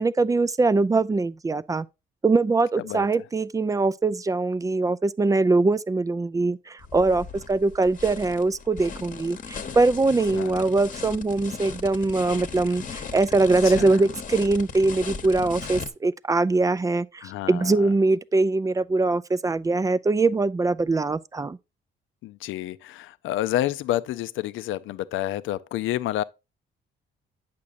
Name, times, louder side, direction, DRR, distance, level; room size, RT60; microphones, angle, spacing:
voice 1, 0.0-1.9 2.2-21.6, right 3 dB, 15° right, 0.4 m, -22 dB
voice 2, 2.8-3.2 10.3-10.6 13.6-14.0 17.2-17.9 22.2-26.2, left 13 dB, 85° left, 0.5 m, -29 dB
sound 1, 6.8-15.9, left 5 dB, 40° left, 1.0 m, -37 dB
8.4 x 6.0 x 2.5 m
cardioid pair, 90°, 20 cm